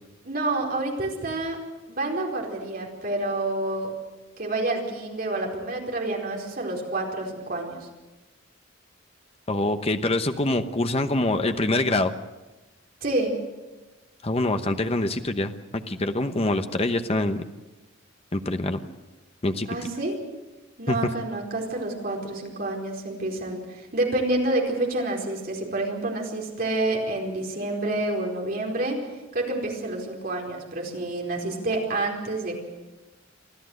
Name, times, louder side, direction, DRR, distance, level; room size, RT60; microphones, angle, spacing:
voice 1, 0.2-1.6 1.9-3.9 4.4-7.8 13.0-13.3 18.8-18.9 19.7-20.2 20.8-29.0 29.3-32.7, right 2 dB, 50° right, 0 dB, 4.6 m, -28 dB
voice 2, 9.5-12.1 14.2-15.5 15.9-17.4 18.3-18.8 19.4-19.7 20.9-21.0, left 2 dB, 30° left, 8 dB, 1.0 m, -25 dB
25.0 x 14.5 x 8.0 m, 1.1 s
head